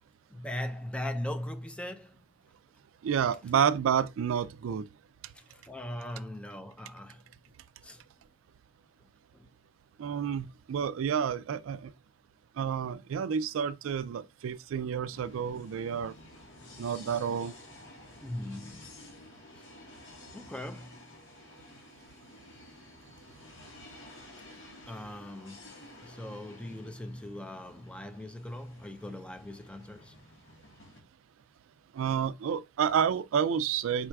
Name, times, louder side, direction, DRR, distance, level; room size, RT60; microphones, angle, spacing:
voice 1, 0.3-2.2 5.3-7.2 7.8-8.0 9.3-9.5 16.6-16.8 18.2-18.9 19.5-19.7 20.3-21.0 24.9-30.2, left 1 dB, 5° left, 0.4 m, -40 dB
voice 2, 3.0-4.9 10.0-11.9 12.6-16.1 16.8-17.5 31.9-34.1, right 7 dB, 80° right, 0.3 m, -29 dB
sound 1, 15.1-31.0, left 1 dB, 65° left, 1.5 m, -52 dB
4.5 x 4.3 x 2.3 m
head